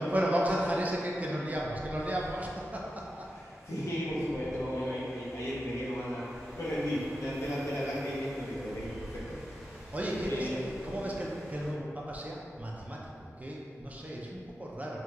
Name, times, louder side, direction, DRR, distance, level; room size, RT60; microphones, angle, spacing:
voice 1, 0.0-3.3 9.9-15.0, equal, 25° right, -4 dB, 0.4 m, -34 dB
sound 1, 1.5-5.5 6.2-12.6, right 1 dB, 70° right, 0.7 m, -51 dB
sound 2, 2.0-11.7, equal, 5° right, 1.3 m, -50 dB
voice 2, 3.7-9.2 9.8-9.9 10.2-10.5, equal, 55° left, -9 dB, 0.9 m, -34 dB
2.8 x 2.2 x 3.5 m, 2.4 s
wide cardioid pair, 55°, 6 cm